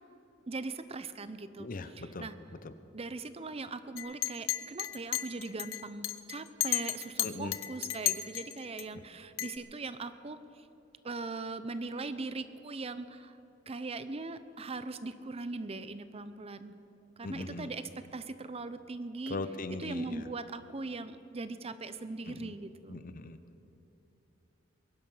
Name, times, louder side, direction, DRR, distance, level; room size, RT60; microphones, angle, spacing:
voice 1, 0.5-1.7 2.0-2.3 2.9-10.7 11.0-13.4 13.7-16.8 17.2-19.4 19.8-23.0, right 3 dB, 30° right, 12 dB, 0.6 m, -40 dB
voice 2, 1.6-2.3 2.6-2.7 7.2-7.5 8.9-9.0 17.2-17.7 19.3-20.2 22.3-22.5 22.9-23.4, left 2 dB, 45° left, 11 dB, 0.7 m, -39 dB
Chink clink, 4.0-8.8 9.4-9.6, left 13 dB, 90° left, 0.7 m, -33 dB
21.5 x 11.5 x 5.6 m, 3.0 s
head